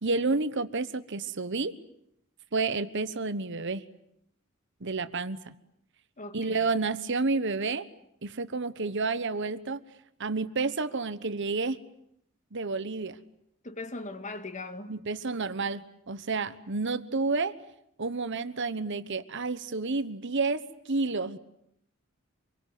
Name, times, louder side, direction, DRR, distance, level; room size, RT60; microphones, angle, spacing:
voice 1, 0.0-1.8 2.5-3.8 4.8-5.5 6.3-7.9 8.2-9.8 10.2-11.8 12.5-13.2 14.9-17.5 18.0-21.4, right 3 dB, 60° right, 1.2 m, -30 dB
voice 2, 6.2-6.7 13.6-14.9, left 2 dB, 35° left, 2.0 m, -39 dB
26.5 x 23.0 x 9.3 m
head